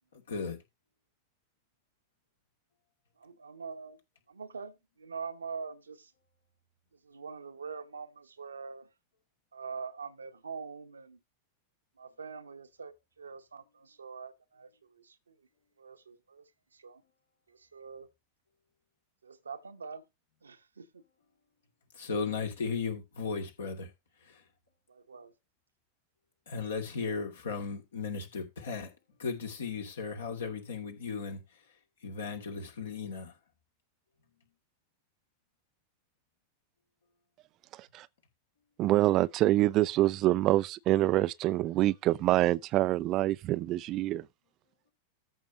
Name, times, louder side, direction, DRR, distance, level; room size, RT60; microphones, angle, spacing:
voice 1, 0.1-0.6 21.9-23.9 24.2-24.4 26.5-28.9 29.2-31.6 32.0-33.4, left 5 dB, 65° left, 2.6 m, -36 dB
voice 2, 3.2-4.0 4.3-6.1 7.0-8.9 9.5-11.2 12.0-15.4 15.8-17.0 17.5-18.1 19.2-20.0 20.4-21.0 24.9-25.3, right 5 dB, 75° right, 1.0 m, -44 dB
voice 3, 38.8-44.2, right 15 dB, 35° right, 0.4 m, -26 dB
14.0 x 6.4 x 2.9 m
figure-of-eight pair, 90°, 0 cm